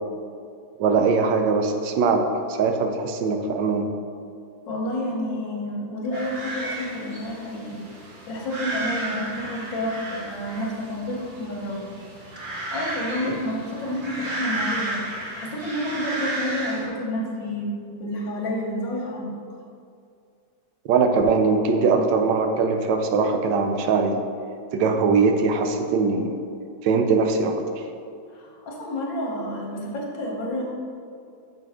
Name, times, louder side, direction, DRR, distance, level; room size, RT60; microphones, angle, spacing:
voice 1, 0.8-3.9 13.3-13.4 20.8-24.2 24.7-26.4 26.8-27.8, right 4 dB, 75° right, 5 dB, 1.3 m, -21 dB
voice 2, 4.7-7.8 8.3-11.8 12.7-15.0 15.4-19.3 28.3-30.6, left 1 dB, 75° left, -1 dB, 1.8 m, -29 dB
sound 1, 6.1-16.9, right 2 dB, 40° right, 1.4 m, -33 dB
6.4 x 5.4 x 3.5 m, 2.4 s
omnidirectional pair, 2.0 m